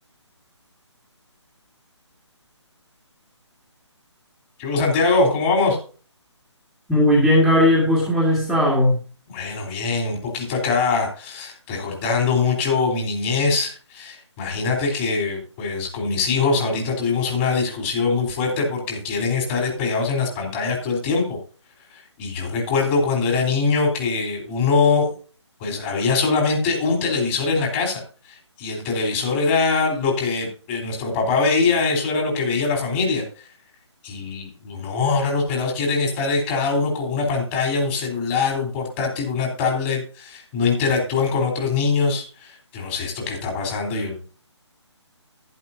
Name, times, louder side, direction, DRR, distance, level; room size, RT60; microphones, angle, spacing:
voice 1, 4.6-5.8 9.3-21.4 21.9-25.1 25.6-33.5 34.0-44.2, left 4 dB, 25° left, 1 dB, 4.0 m, -23 dB
voice 2, 6.9-8.9, left 1 dB, ahead, -6 dB, 2.2 m, -17 dB
11.5 x 11.0 x 2.8 m, 0.38 s
figure-of-eight pair, 150°, 15 cm